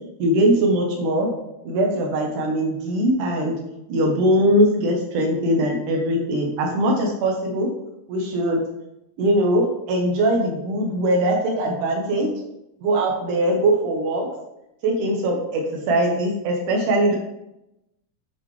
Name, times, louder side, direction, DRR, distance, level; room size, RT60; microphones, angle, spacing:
voice 1, 0.2-1.3 1.7-3.6 3.9-7.7 8.1-8.6 9.2-12.3 12.8-14.3 14.8-17.2, right 1 dB, 85° right, 0 dB, 2.8 m, -21 dB
8.3 x 8.1 x 3.2 m, 0.87 s
omnidirectional pair, 3.5 m